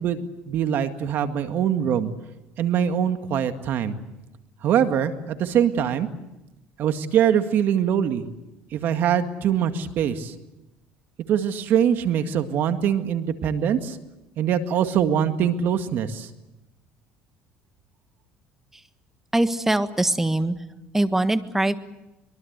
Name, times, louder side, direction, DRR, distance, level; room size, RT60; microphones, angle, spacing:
voice 1, 0.0-2.1 2.6-4.0 4.6-6.1 6.8-8.3 8.7-10.3 11.3-14.0 14.4-16.3, right 9 dB, 60° right, 8 dB, 2.0 m, -23 dB
voice 2, 19.3-20.6 20.9-21.7, right 1 dB, 10° right, 10 dB, 1.5 m, -22 dB
23.5 x 23.0 x 8.2 m, 0.96 s
cardioid pair, 110°, 4 cm